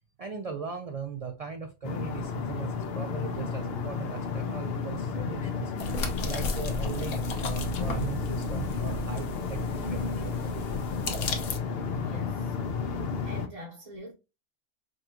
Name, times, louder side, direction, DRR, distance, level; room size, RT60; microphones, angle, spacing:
voice 1, 0.2-5.7 6.2-10.7, right 5 dB, 50° right, 0.4 m, -39 dB
sound 1, 1.8-13.5, left 5 dB, 60° left, 0.8 m, -32 dB
sound 2, 5.8-11.6, left 1 dB, 80° left, 1.2 m, -34 dB
voice 2, 12.0-12.6 13.2-14.1, equal, 35° right, 0.9 m, -44 dB
5.0 x 2.4 x 2.8 m
omnidirectional pair, 1.3 m